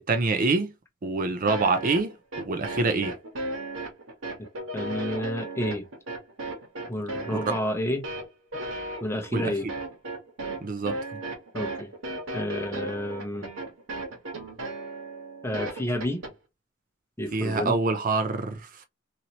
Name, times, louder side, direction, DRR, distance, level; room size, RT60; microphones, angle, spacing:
voice 1, 0.1-0.7 1.0-3.2 7.3-7.6 9.3-9.5 10.6-11.2 17.3-18.8, right 3 dB, 45° right, 0.5 m, -26 dB
sound 1, 1.5-16.3, right 2 dB, 80° right, 1.3 m, -35 dB
voice 2, 4.7-5.8 6.9-8.0 9.0-9.7 11.5-11.9 12.3-13.5 15.4-16.2 17.2-17.8, left 1 dB, 15° left, 0.8 m, -30 dB
2.8 x 2.7 x 2.9 m
head